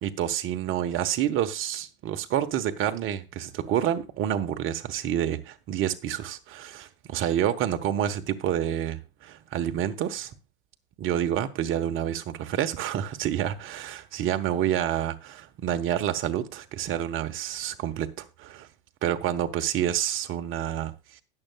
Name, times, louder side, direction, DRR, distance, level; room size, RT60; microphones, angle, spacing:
voice 1, 0.0-10.3 11.0-18.7 19.0-21.2, right 10 dB, 45° right, 1.2 m, -28 dB
20.0 x 6.8 x 2.3 m
supercardioid pair, 110°, 29 cm